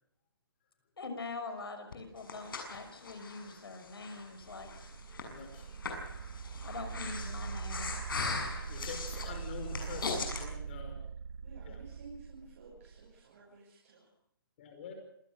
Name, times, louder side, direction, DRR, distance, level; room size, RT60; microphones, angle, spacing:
voice 1, 1.0-4.7 6.6-7.9, left 3 dB, 90° left, 8 dB, 6.2 m, -43 dB
Breathing, 1.9-10.4, left 4 dB, 65° left, 6.9 m, -40 dB
sound 1, 4.4-13.2, right 6 dB, 65° right, 0.8 m, -42 dB
voice 2, 5.3-5.8 6.3-6.4 8.4-11.0 11.7-11.8 14.6-14.9, left 6 dB, 30° left, 5 dB, 5.4 m, -46 dB
voice 3, 9.6-10.1 11.4-14.1, right 4 dB, 40° right, -4 dB, 6.6 m, -53 dB
27.0 x 17.0 x 6.6 m, 0.72 s
hypercardioid pair, 175°, 12 cm